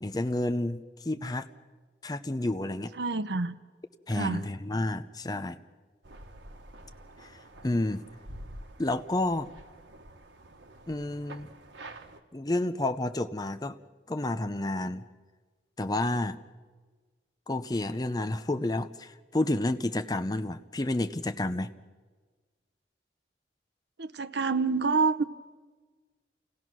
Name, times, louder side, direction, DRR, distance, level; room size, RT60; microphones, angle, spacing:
voice 1, 0.0-1.5 2.0-2.9 4.1-5.6 7.2-7.3 7.6-8.0 8.8-9.5 10.9-11.5 12.3-13.8 14.1-15.0 15.8-16.4 17.5-21.7, left 1 dB, 20° left, 10 dB, 0.6 m, -30 dB
voice 2, 3.0-3.6 4.1-4.5 24.0-25.2, right 4 dB, 70° right, 12 dB, 0.7 m, -27 dB
sound 1, 6.0-12.2, right 1 dB, 90° right, 1.4 m, -48 dB
28.0 x 18.0 x 6.2 m, 1.4 s
head